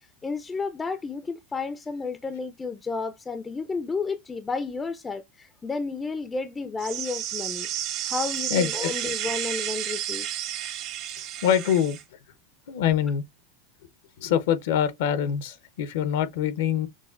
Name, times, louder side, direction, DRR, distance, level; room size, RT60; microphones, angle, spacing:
voice 1, 0.2-7.7 8.0-10.3, left 4 dB, 15° left, 0.4 m, -32 dB
sound 1, 6.8-12.0, right 11 dB, 45° right, 0.8 m, -31 dB
voice 2, 8.5-8.9 11.4-12.0 12.7-13.2 14.2-16.9, left 9 dB, 75° left, 0.6 m, -24 dB
6.2 x 2.1 x 2.4 m
supercardioid pair, 135°, 0 cm